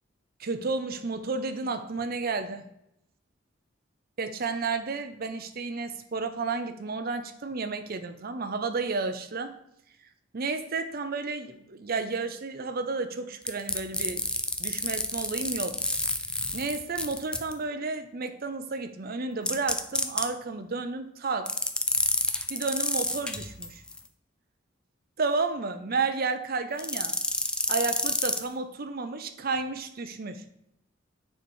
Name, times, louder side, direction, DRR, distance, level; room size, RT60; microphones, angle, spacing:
voice 1, 0.4-2.6 4.2-9.5 10.3-14.3 14.6-15.8 16.5-21.5 22.5-23.8 25.2-27.2 27.7-30.4, right 4 dB, 50° right, 8 dB, 0.7 m, -32 dB
sound 1, 13.5-17.5 19.5-20.3 21.5-24.0 26.8-28.4, left 2 dB, 5° left, 0.5 m, -29 dB
6.5 x 4.6 x 4.5 m, 0.79 s
head